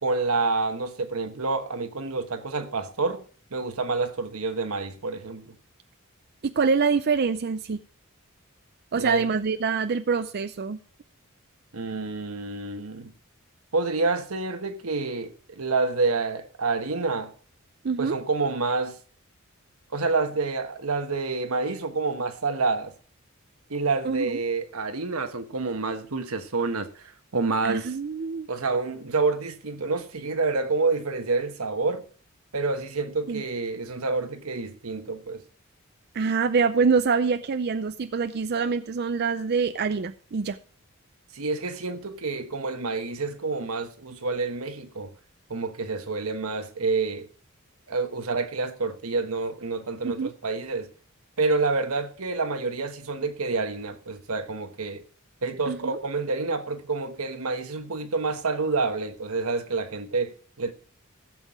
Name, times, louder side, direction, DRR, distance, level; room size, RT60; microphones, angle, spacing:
voice 1, 0.0-3.2 3.5-5.5 8.9-9.2 11.7-13.1 13.7-17.3 18.0-19.0 19.9-22.9 23.7-27.9 28.5-32.0 32.5-35.4 41.3-45.1 45.5-47.3 47.9-50.9 51.4-55.0 55.4-60.7, right 3 dB, 85° right, 1.3 m, -28 dB
voice 2, 6.4-7.8 8.9-10.8 17.8-18.2 24.0-24.4 27.6-28.5 33.3-33.4 36.1-40.6 50.0-50.3 55.7-56.0, right 5 dB, 50° right, 0.5 m, -25 dB
15.5 x 7.3 x 4.8 m
head